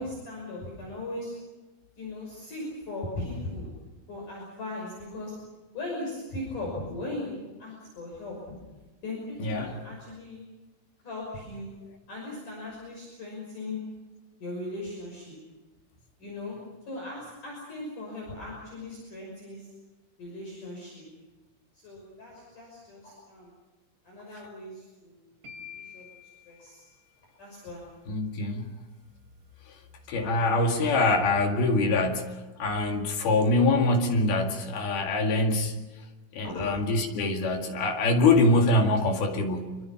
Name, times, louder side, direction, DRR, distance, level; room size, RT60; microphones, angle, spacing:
voice 1, 0.0-1.3 2.0-3.7 4.1-5.3 5.7-8.4 9.0-10.4 11.0-11.7 12.1-13.8 14.4-15.3 16.2-16.6 16.9-19.7 20.2-21.0 21.8-23.5 24.0-25.1 25.5-26.1 26.5-26.8 27.4-28.3 36.4-36.7, left 2 dB, 40° left, -2 dB, 7.2 m, -38 dB
voice 2, 9.4-9.8 28.1-28.7 30.1-35.8 36.3-39.8, left 2 dB, 55° left, 3 dB, 3.6 m, -24 dB
sound 1, 25.4-27.6, left 7 dB, 65° right, 5.1 m, -48 dB
27.0 x 24.0 x 5.8 m, 1.2 s
omnidirectional pair, 5.8 m